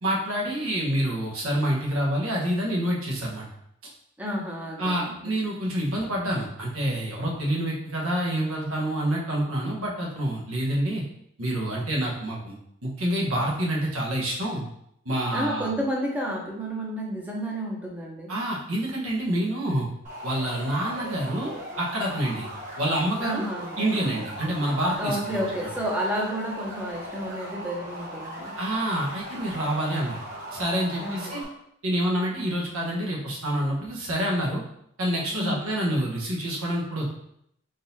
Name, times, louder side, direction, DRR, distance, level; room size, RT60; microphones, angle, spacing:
voice 1, 0.0-3.5 4.8-11.0 11.4-12.6 12.8-14.6 15.0-15.7 18.3-19.9 20.2-21.5 21.8-22.5 22.8-23.4 23.8-25.4 28.6-30.2 30.5-31.4 31.8-34.6 35.0-37.1, right 1 dB, 85° right, -3 dB, 1.1 m, -27 dB
voice 2, 4.2-5.3 15.3-18.3 23.2-23.8 25.0-28.5 31.0-31.3 35.3-35.7, equal, 5° right, -2 dB, 0.7 m, -31 dB
sound 1, 20.0-31.4, equal, 35° right, 1.5 m, -38 dB
4.0 x 3.9 x 2.7 m, 0.73 s
head